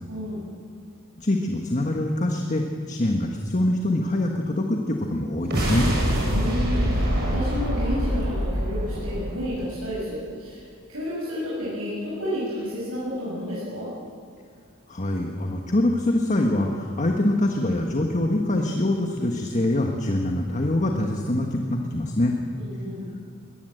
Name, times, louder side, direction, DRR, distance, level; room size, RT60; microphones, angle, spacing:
voice 1, 0.1-0.4 6.3-10.6 10.9-13.9 22.5-23.0, equal, 85° right, -8 dB, 6.8 m, -31 dB
voice 2, 1.2-5.9 14.9-22.3, left 1 dB, 35° left, 2 dB, 1.4 m, -24 dB
sound 1, 5.4-9.9, equal, 50° right, 6.5 m, -25 dB
22.5 x 19.0 x 7.9 m, 2.2 s
head